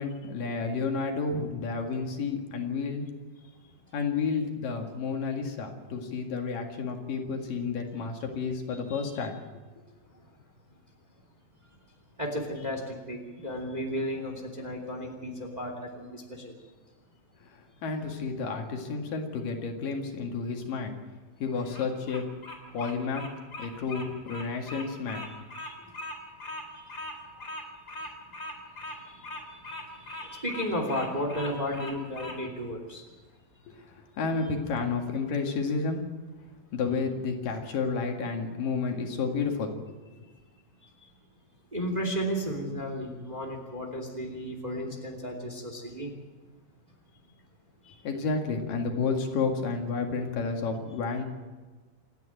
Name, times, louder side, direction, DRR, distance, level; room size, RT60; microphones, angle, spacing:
voice 1, 0.0-3.0 3.9-9.4 9.8-9.9 17.5-21.0 21.4-22.3 22.7-23.3 23.6-25.3 33.7-36.0 36.7-39.8 48.0-51.2, left 4 dB, 70° left, 3 dB, 3.6 m, -31 dB
voice 2, 8.9-9.3 12.2-16.5 25.3-25.8 26.7-26.9 29.1-33.0 41.7-46.1 47.8-48.0, equal, 15° right, 3 dB, 2.2 m, -34 dB
Bird vocalization bird call bird song, 21.5-32.4, left 1 dB, 25° left, 4.1 m, -40 dB
27.5 x 10.5 x 9.1 m, 1.3 s
omnidirectional pair, 4.2 m